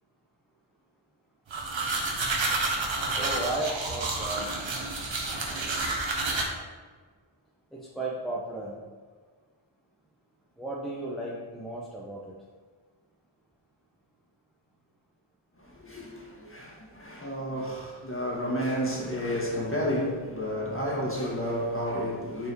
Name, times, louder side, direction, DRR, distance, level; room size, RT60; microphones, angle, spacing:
sound 1, 1.5-6.5, right 2 dB, 65° right, 1.1 m, -30 dB
voice 1, 3.1-4.5 7.7-8.8 10.6-12.3, right 2 dB, ahead, 1.0 m, -34 dB
voice 2, 15.6-22.5, equal, 25° left, 1.9 m, -31 dB
5.5 x 4.6 x 4.7 m
wide cardioid pair, 60°, 49 cm